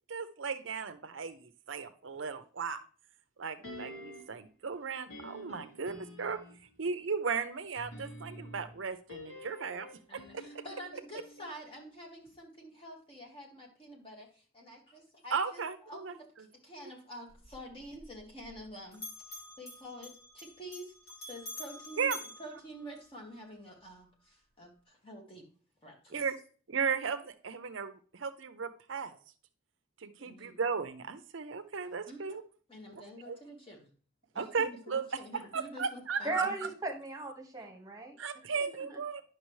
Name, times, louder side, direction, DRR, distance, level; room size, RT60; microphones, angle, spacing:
voice 1, 0.1-2.8 3.4-6.4 6.8-10.6 15.3-16.1 22.0-22.2 26.1-26.3 26.7-29.2 30.0-32.4 33.3-33.4 34.4-35.0 35.5-36.4 38.2-39.2, right 5 dB, 70° right, 11 dB, 0.6 m, -36 dB
sound 1, 3.6-4.5 5.1-6.7 7.7-12.0 12.2-12.3, left 1 dB, 90° left, 2.7 m, -49 dB
voice 2, 10.1-16.3 16.5-25.5 25.8-26.2 30.2-30.5 32.1-32.4 32.7-33.9 34.3-36.5, equal, 25° left, 0 dB, 1.9 m, -48 dB
Bell, 17.3-18.7 18.9-23.4, left 1 dB, 50° left, 3.0 m, -48 dB
voice 3, 36.2-39.0, right 3 dB, 15° right, 1 dB, 1.4 m, -37 dB
10.0 x 6.0 x 3.2 m, 0.41 s
head